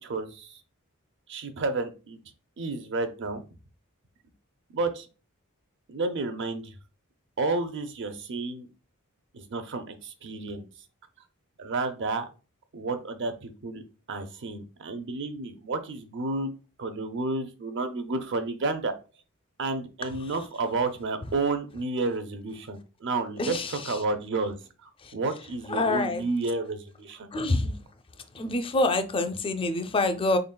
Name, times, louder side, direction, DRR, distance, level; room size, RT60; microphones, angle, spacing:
voice 1, 0.0-0.6 1.3-2.2 2.6-3.4 4.7-5.1 5.9-6.7 7.4-8.7 9.3-10.7 11.6-12.3 12.7-13.8 14.1-16.5 16.8-18.9 19.6-27.3, right 3 dB, 60° right, 9 dB, 0.6 m, -31 dB
voice 2, 23.4-24.0 25.0-25.1 25.7-26.2 27.3-27.7 28.3-30.4, left 2 dB, 25° left, 8 dB, 0.4 m, -26 dB
3.8 x 3.6 x 2.2 m, 0.33 s
head